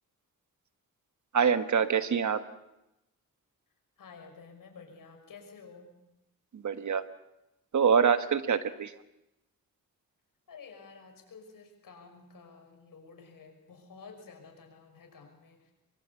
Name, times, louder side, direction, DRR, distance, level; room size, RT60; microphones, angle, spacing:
voice 1, 1.3-2.4 6.5-7.0 7.7-9.0, right 7 dB, 60° right, 11 dB, 1.4 m, -25 dB
voice 2, 4.0-5.9 10.5-15.7, left 5 dB, 75° left, 3 dB, 5.9 m, -51 dB
24.0 x 23.5 x 8.4 m, 0.91 s
wide cardioid pair, 115°, 34 cm